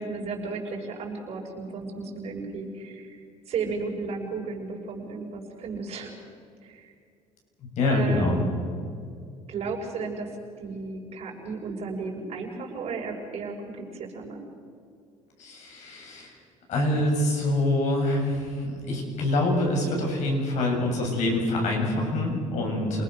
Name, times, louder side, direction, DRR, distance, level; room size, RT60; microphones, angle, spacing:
voice 1, 0.0-3.2 3.5-6.1 6.6-6.9 7.9-8.5 9.5-10.3 10.6-14.4, right 4 dB, 55° right, 1 dB, 6.3 m, -34 dB
voice 2, 7.8-8.4 15.4-16.3 16.7-23.0, left 1 dB, 65° left, 0 dB, 7.6 m, -25 dB
28.0 x 20.0 x 6.8 m, 2.3 s
cardioid pair, 105°, 13 cm